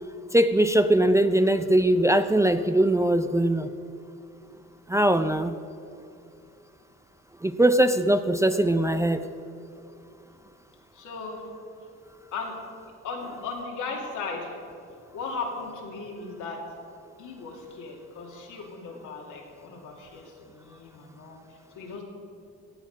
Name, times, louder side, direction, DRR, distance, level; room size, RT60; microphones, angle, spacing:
voice 1, 0.3-3.7 4.9-5.6 7.4-9.2, right 1 dB, 10° right, 9 dB, 0.4 m, -21 dB
voice 2, 10.9-11.4 12.3-12.6 13.0-14.6 15.1-16.6 17.2-22.0, left 4 dB, 80° left, 0 dB, 2.5 m, -37 dB
15.5 x 8.4 x 5.3 m, 2.5 s
cardioid pair, 90°, 30 cm